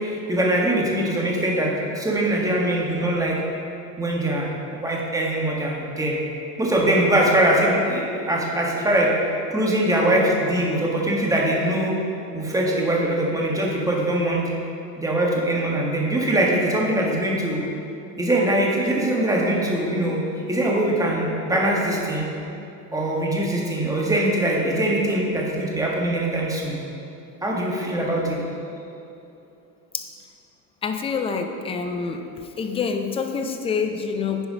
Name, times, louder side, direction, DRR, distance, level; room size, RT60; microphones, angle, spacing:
voice 1, 0.0-3.4 4.0-6.2 6.6-9.1 9.5-11.9 12.3-14.4 15.0-17.6 18.2-20.2 20.5-22.3 22.9-26.8 27.4-28.4, right 1 dB, 5° right, -2 dB, 1.5 m, -22 dB
voice 2, 30.8-32.2 32.6-34.5, left 5 dB, 15° left, 6 dB, 0.4 m, -26 dB
9.8 x 4.8 x 5.1 m, 2.8 s
supercardioid pair, 110°, 47 cm